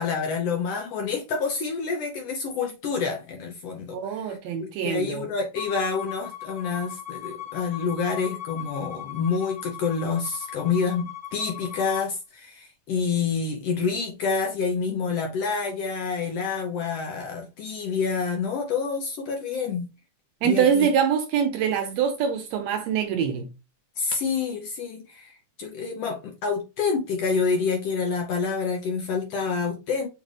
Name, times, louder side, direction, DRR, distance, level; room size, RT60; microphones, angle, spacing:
voice 1, 0.0-19.9 20.4-20.9 24.0-30.1, left 5 dB, 75° left, 1.6 m, -28 dB
voice 2, 3.9-5.3 20.4-23.5, right 8 dB, 75° right, 1.6 m, -24 dB
Bowed string instrument, 5.5-12.1, left 12 dB, 40° left, 1.0 m, -38 dB
6.5 x 2.5 x 3.2 m
omnidirectional pair, 3.5 m